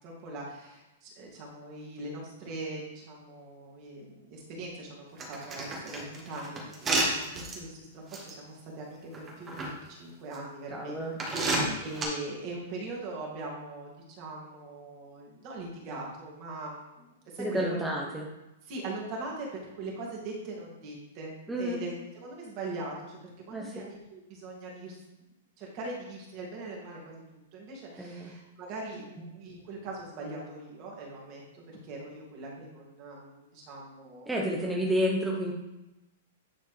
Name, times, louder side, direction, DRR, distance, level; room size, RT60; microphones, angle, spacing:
voice 1, 0.0-17.8 18.7-19.5 19.7-22.0 22.2-23.2 23.5-25.0 25.6-27.2 27.5-34.3 34.6-34.7, right 2 dB, 40° right, -3 dB, 2.5 m, -41 dB
sound 1, 5.2-7.6 8.1-8.3 9.1-9.7 10.3-10.4 11.2-12.0, right 2 dB, 20° right, 1.6 m, -30 dB
voice 2, 10.7-11.2 17.4-18.3 21.5-21.8 23.5-23.8 28.0-28.3 34.3-35.5, equal, 5° right, -2 dB, 1.0 m, -30 dB
9.8 x 4.3 x 3.4 m, 0.96 s
hypercardioid pair, 135°, 0 cm